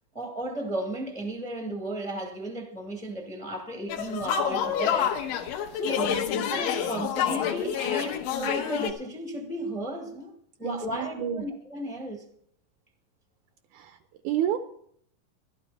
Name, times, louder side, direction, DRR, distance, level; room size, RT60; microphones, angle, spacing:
voice 1, 0.1-5.1 5.7-6.1 6.5-10.3 10.6-12.2, right 1 dB, 10° left, 0.3 m, -34 dB
sound 1, 3.9-8.9, left 9 dB, 80° left, 2.5 m, -28 dB
voice 2, 6.0-6.5 10.6-11.5 13.7-14.0 14.2-14.6, right 10 dB, 80° right, 2.0 m, -30 dB
13.5 x 12.0 x 4.0 m
omnidirectional pair, 3.7 m